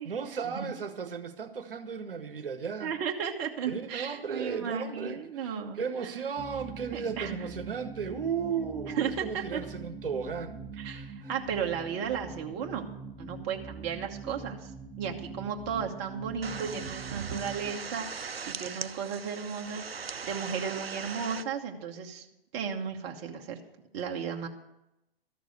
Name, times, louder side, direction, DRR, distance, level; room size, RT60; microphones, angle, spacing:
voice 1, 0.0-2.9 3.7-11.3, right 6 dB, 65° right, 8 dB, 1.1 m, -35 dB
voice 2, 2.8-5.8 6.9-7.4 9.0-9.6 10.8-12.9 13.2-14.7 15.0-20.0 20.2-22.2 22.5-23.6 23.9-24.5, right 7 dB, 30° right, 2 dB, 1.1 m, -34 dB
sound 1, 6.4-17.7, right 4 dB, 10° right, 0.8 m, -43 dB
sound 2, 16.4-21.4, right 5 dB, 80° right, 0.6 m, -39 dB
13.0 x 6.7 x 7.8 m, 0.89 s
figure-of-eight pair, 115°, 30 cm